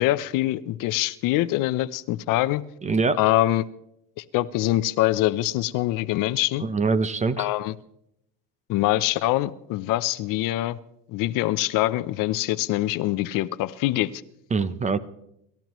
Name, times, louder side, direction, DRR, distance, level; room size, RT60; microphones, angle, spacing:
voice 1, 0.0-2.6 3.2-3.7 4.2-6.6 7.4-7.7 8.7-10.8 11.1-14.1, left 16 dB, 60° left, 15 dB, 0.7 m, -24 dB
voice 2, 2.8-3.2 6.6-7.5 14.5-15.0, right 4 dB, 20° right, 14 dB, 0.6 m, -23 dB
28.5 x 13.5 x 3.1 m, 0.78 s
cardioid pair, 140°, 38 cm